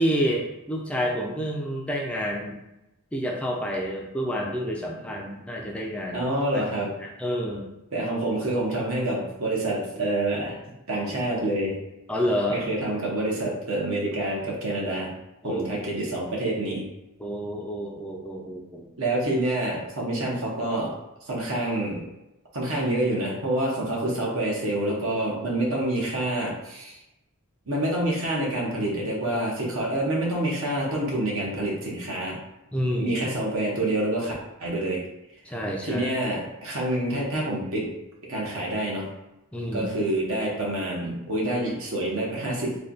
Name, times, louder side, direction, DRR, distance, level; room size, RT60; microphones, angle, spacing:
voice 1, 0.0-2.6 3.1-6.3 6.5-6.6 7.0-7.7 12.1-12.6 15.4-15.6 17.2-18.9 32.7-33.2 35.5-36.0 39.5-39.9, equal, 5° left, -1 dB, 0.4 m, -28 dB
voice 2, 6.1-7.0 7.9-10.6 10.9-11.8 12.5-15.1 15.4-16.9 19.0-20.9 21.3-22.1 22.5-26.9 27.7-32.4 33.0-34.3 34.6-35.0 35.8-38.0 38.3-39.1 39.7-42.8, right 1 dB, 70° right, -3 dB, 1.0 m, -27 dB
3.2 x 2.2 x 3.9 m, 0.91 s
head